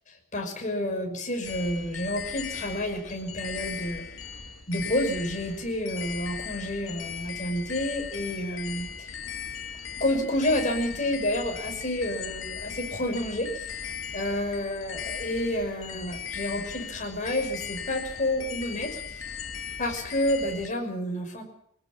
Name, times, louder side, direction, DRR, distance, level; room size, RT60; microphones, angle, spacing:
voice 1, 0.1-4.0 4.7-9.1 10.0-13.9 14.1-19.3 19.8-21.4, left 1 dB, 35° left, 2 dB, 5.8 m, -29 dB
sound 1, 1.4-20.7, left 7 dB, 75° left, 2.3 m, -38 dB
22.5 x 19.5 x 7.5 m, 0.70 s
head